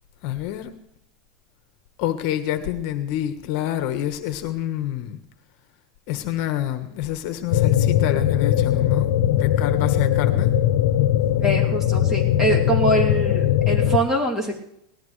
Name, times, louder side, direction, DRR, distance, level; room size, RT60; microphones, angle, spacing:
voice 1, 0.2-0.7 2.0-5.2 6.1-10.5, left 12 dB, 55° left, 9 dB, 1.2 m, -27 dB
sound 1, 7.5-14.0, left 11 dB, 80° left, 0.9 m, -20 dB
voice 2, 11.4-14.5, right 1 dB, 15° right, -2 dB, 2.9 m, -23 dB
19.0 x 13.5 x 3.3 m, 0.75 s
supercardioid pair, 150°, 3 cm